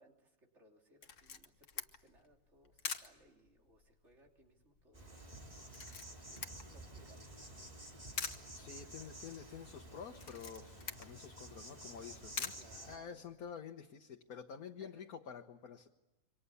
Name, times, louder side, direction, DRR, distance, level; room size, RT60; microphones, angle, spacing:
voice 1, 0.0-8.0 8.6-9.4 12.6-13.2 14.8-15.1, right 1 dB, 50° right, 2 dB, 3.6 m, -67 dB
Camera, 1.0-13.5, left 5 dB, 60° left, 1.6 m, -48 dB
Insect, 4.9-13.0, right 1 dB, 25° right, 3.7 m, -52 dB
voice 2, 8.5-12.5 12.9-15.9, left 7 dB, 90° left, 3 dB, 1.6 m, -49 dB
28.0 x 24.5 x 7.0 m, 1.1 s
omnidirectional pair, 1.5 m